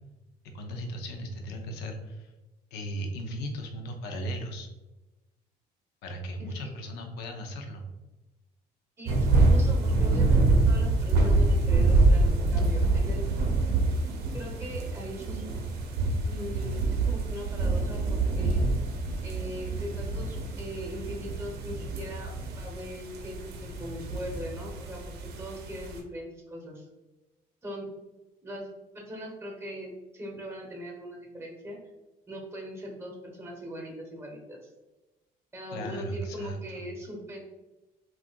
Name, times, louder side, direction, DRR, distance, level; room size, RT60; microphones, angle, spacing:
voice 1, 0.5-2.3 2.7-4.7 6.0-7.9 35.7-36.8, equal, 90° left, 4 dB, 0.5 m, -37 dB
voice 2, 9.0-13.3 14.3-15.5 16.3-18.6 19.2-26.9 27.6-27.9 28.4-28.7 28.9-31.8 32.3-34.7 35.5-37.4, equal, 15° right, 0 dB, 0.9 m, -40 dB
sound 1, 9.1-26.0, right 2 dB, 70° right, 0.6 m, -26 dB
3.5 x 2.3 x 2.2 m, 1.0 s
cardioid pair, 110°, 17 cm